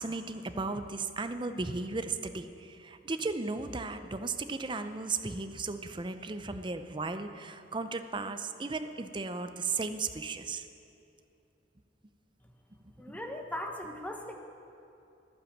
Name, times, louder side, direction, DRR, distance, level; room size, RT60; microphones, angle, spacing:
voice 1, 0.0-10.7 12.8-13.2, right 3 dB, 25° right, 9 dB, 0.6 m, -35 dB
voice 2, 13.0-14.3, left 1 dB, 10° left, 3 dB, 1.2 m, -38 dB
14.0 x 10.5 x 7.3 m, 2.8 s
head